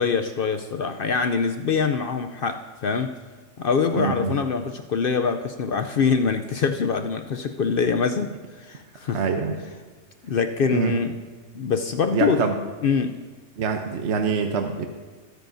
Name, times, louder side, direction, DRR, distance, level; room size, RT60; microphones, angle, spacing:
voice 1, 0.0-3.2 3.6-9.2 10.2-11.2 11.5-12.5 12.8-13.2, left 5 dB, 60° left, 8 dB, 0.6 m, -24 dB
voice 2, 3.9-4.4 9.0-9.6 10.7-10.9 12.1-12.6 13.6-14.9, right 5 dB, 60° right, 5 dB, 1.0 m, -25 dB
18.5 x 9.3 x 2.6 m, 1.4 s
omnidirectional pair, 1.4 m